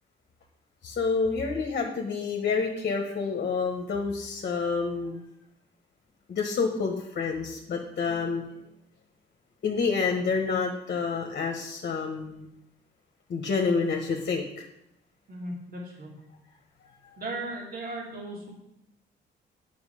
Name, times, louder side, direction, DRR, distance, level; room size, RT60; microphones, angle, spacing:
voice 1, 0.8-5.2 6.3-8.7 9.6-12.5 13.3-14.7, left 4 dB, 50° left, 2 dB, 1.2 m, -28 dB
voice 2, 15.3-16.1 17.2-18.5, right 2 dB, 50° right, -3 dB, 3.0 m, -36 dB
8.0 x 6.1 x 5.0 m, 0.82 s
cardioid pair, 90°, 20 cm